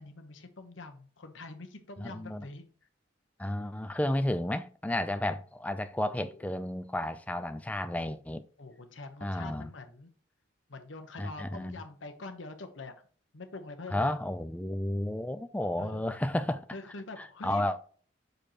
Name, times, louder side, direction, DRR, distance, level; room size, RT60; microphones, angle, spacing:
voice 1, 0.0-2.6 6.0-6.5 8.6-10.1 10.7-12.9 13.3-14.1 15.8-16.1 16.7-17.7, left 3 dB, 80° left, 1.0 m, -45 dB
voice 2, 2.0-2.5 3.4-8.4 9.2-9.7 11.2-11.8 13.9-16.7 17.2-17.8, left 1 dB, 10° left, 0.4 m, -32 dB
6.5 x 5.1 x 3.0 m
head